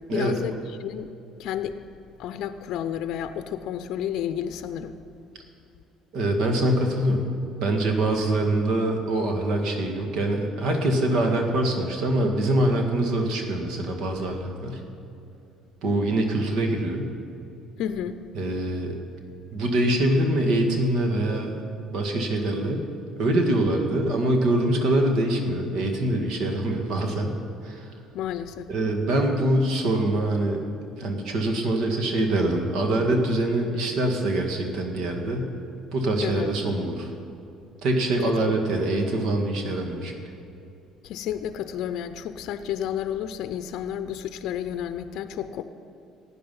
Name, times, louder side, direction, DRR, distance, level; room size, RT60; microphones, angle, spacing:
voice 1, 0.1-1.1 1.4-1.8 2.2-5.0 17.8-18.2 28.1-28.7 36.2-36.5 38.3-38.5 41.0-45.6, left 10 dB, 70° left, 10 dB, 0.5 m, -31 dB
voice 2, 6.1-14.8 15.8-17.1 18.3-18.9 19.5-21.6 21.9-22.8 23.2-27.4 27.6-27.9 28.7-30.7 31.0-35.5 35.9-37.1 37.8-40.1, right 1 dB, 65° right, 3 dB, 1.9 m, -24 dB
15.5 x 9.4 x 5.5 m, 2.7 s
cardioid pair, 100°, 0 cm